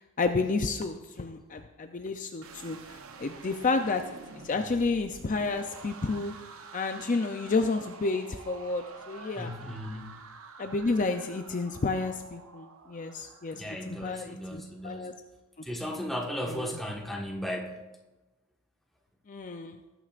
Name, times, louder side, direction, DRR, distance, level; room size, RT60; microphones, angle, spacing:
voice 1, 0.0-4.2 4.4-6.3 6.7-9.5 10.6-15.1 15.6-15.7 16.5-16.8 19.3-19.8, left 3 dB, 40° left, 6 dB, 0.5 m, -31 dB
sound 1, 2.4-14.5, right 4 dB, 75° right, 0.8 m, -48 dB
voice 2, 9.4-10.1 13.5-15.1 15.6-17.8, equal, ahead, -1 dB, 1.4 m, -36 dB
19.0 x 9.1 x 2.5 m, 1.1 s
head